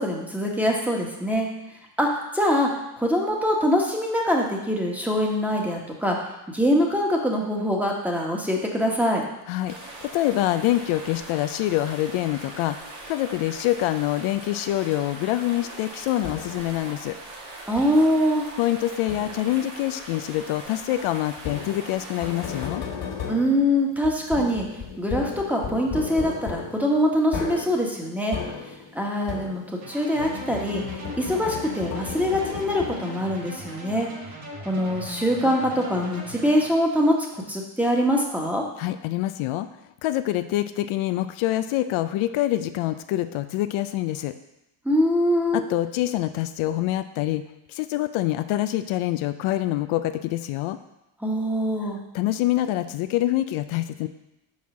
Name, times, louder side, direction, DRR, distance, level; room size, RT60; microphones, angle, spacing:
voice 1, 0.0-1.5 2.0-2.7 3.0-6.2 6.5-9.2 17.7-18.5 23.3-24.6 25.0-28.4 28.9-30.8 31.2-34.1 34.6-38.6 44.8-45.6 51.2-52.0, equal, 5° right, 0 dB, 1.3 m, -23 dB
sound 1, 9.7-22.7, right 2 dB, 75° right, 2.1 m, -41 dB
voice 2, 10.0-17.2 18.6-22.8 38.8-39.7 40.0-44.3 45.5-50.8 52.1-54.1, left 14 dB, 75° left, 10 dB, 0.6 m, -25 dB
sound 2, 16.2-16.8 17.8-18.2 19.1-19.6 21.4-29.9 30.2-33.3, left 6 dB, 60° left, 1.9 m, -35 dB
sound 3, 29.8-36.7, equal, 45° right, 2.1 m, -39 dB
5.6 x 4.4 x 6.2 m, 0.90 s
cardioid pair, 105°, 49 cm